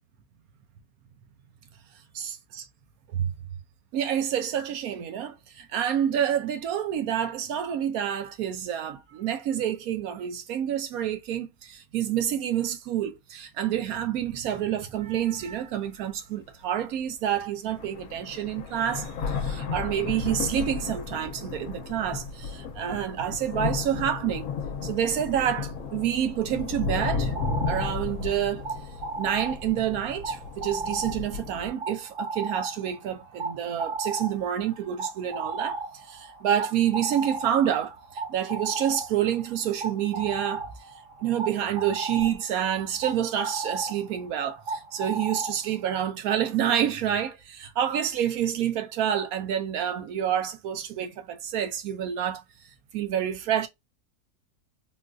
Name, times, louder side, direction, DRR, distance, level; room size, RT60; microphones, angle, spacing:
voice 1, 2.1-2.7 3.1-3.3 3.9-24.5 24.8-27.3 27.7-28.7 29.2-40.7 41.2-52.4 52.9-53.7, right 10 dB, 70° right, 1.0 m, -28 dB
sound 1, 15.2-15.3 15.9-16.0 17.3-17.4 17.7-31.7, left 5 dB, 70° left, 1.1 m, -34 dB
sound 2, 26.6-46.0, right 3 dB, 55° right, 1.6 m, -36 dB
3.8 x 2.5 x 2.3 m
omnidirectional pair, 1.6 m